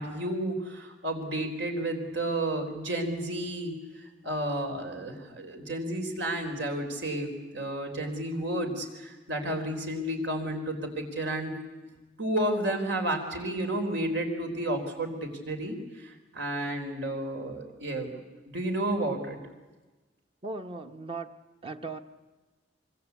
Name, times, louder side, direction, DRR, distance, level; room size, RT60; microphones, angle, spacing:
voice 1, 0.0-3.7 4.2-11.6 12.2-18.1 18.4-19.4, right 1 dB, 70° right, 4 dB, 4.5 m, -31 dB
voice 2, 20.4-21.3 21.6-22.0, right 3 dB, 30° right, 7 dB, 1.3 m, -37 dB
26.0 x 24.0 x 8.4 m, 1.2 s
head